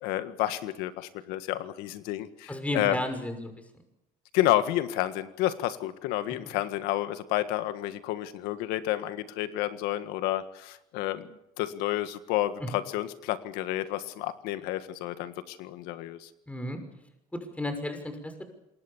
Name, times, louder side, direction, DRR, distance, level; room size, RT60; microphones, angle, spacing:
voice 1, 0.0-3.0 4.3-11.3 11.6-16.3, left 14 dB, 90° left, 11 dB, 1.7 m, -30 dB
voice 2, 2.5-3.5 12.6-12.7 16.5-16.8 17.3-18.4, left 1 dB, 10° left, 7 dB, 6.1 m, -33 dB
27.0 x 21.5 x 7.3 m, 0.84 s
cardioid pair, 90°, 16 cm